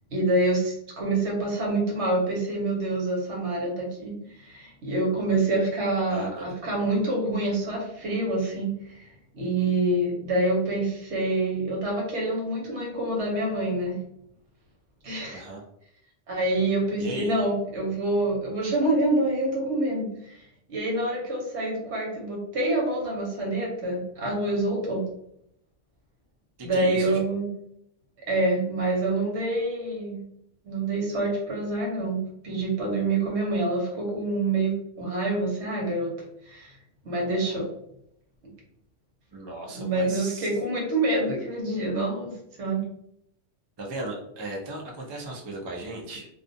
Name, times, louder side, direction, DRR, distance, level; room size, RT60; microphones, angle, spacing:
voice 1, 0.1-9.1 9.3-14.0 15.0-15.4 16.3-20.4 20.7-25.0 26.6-27.5 28.3-30.2 30.6-36.1 36.5-36.8 37.0-37.7 39.8-42.3 42.6-42.8, right 2 dB, 70° right, -2 dB, 1.2 m, -26 dB
voice 2, 6.1-6.6 15.3-15.6 17.0-17.3 26.7-27.2 39.3-40.5 43.8-46.3, right 1 dB, 35° right, -1 dB, 0.4 m, -36 dB
2.4 x 2.3 x 2.6 m, 0.74 s
omnidirectional pair, 1.2 m